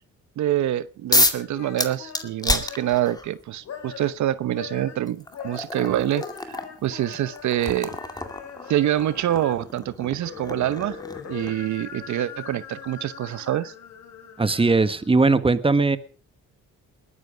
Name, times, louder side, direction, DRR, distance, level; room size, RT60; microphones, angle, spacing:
voice 1, 0.4-8.0 8.7-11.0 11.3-13.7, right 12 dB, 70° right, 15 dB, 0.8 m, -26 dB
sound 1, 1.1-1.5 1.8-3.3 4.4-4.5 5.1-11.7, left 2 dB, 15° left, 2.3 m, -28 dB
sound 2, 1.4-3.2 3.6-4.2 4.5-9.7 10.0-15.1, left 7 dB, 60° left, 4.6 m, -41 dB
voice 2, 14.4-16.0, right 3 dB, 20° right, 12 dB, 1.4 m, -19 dB
20.5 x 13.5 x 5.0 m, 0.41 s
cardioid pair, 90°, 30 cm